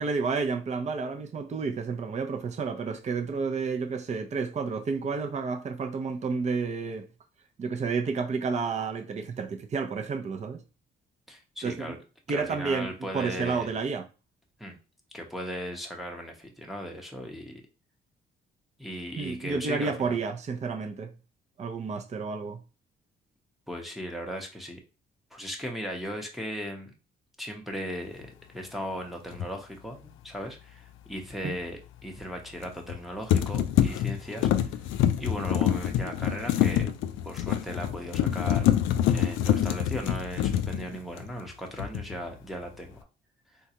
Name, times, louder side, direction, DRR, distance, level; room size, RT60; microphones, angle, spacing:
voice 1, 0.0-7.1 7.6-10.6 11.6-12.0 12.3-12.9 13.1-14.0 19.2-21.1 21.6-22.6 31.4-31.6, right 5 dB, 35° right, 0.6 m, -30 dB
voice 2, 11.3-12.0 12.3-13.7 14.6-14.8 15.1-17.6 18.8-20.2 23.7-24.8 25.3-26.9 27.4-34.8 35.2-36.9 37.2-38.7 39.1-43.0, equal, ahead, 0.8 m, -37 dB
sound 1, 29.3-29.5 32.6-33.0 33.3-41.5 41.8-42.2, left 11 dB, 85° left, 0.4 m, -26 dB
3.7 x 2.3 x 2.8 m
cardioid pair, 90°, 20 cm